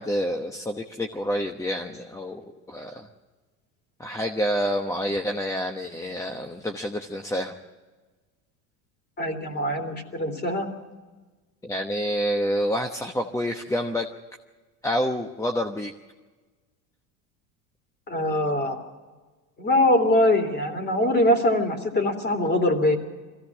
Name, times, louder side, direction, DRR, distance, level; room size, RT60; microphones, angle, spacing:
voice 1, 0.0-3.1 4.0-7.5 11.6-14.1 14.8-15.9, equal, 10° left, 3 dB, 1.0 m, -28 dB
voice 2, 9.2-10.7 18.1-18.8 19.6-23.0, left 1 dB, 25° left, 7 dB, 3.2 m, -22 dB
22.5 x 16.0 x 7.3 m, 1.3 s
supercardioid pair, 130°, 40 cm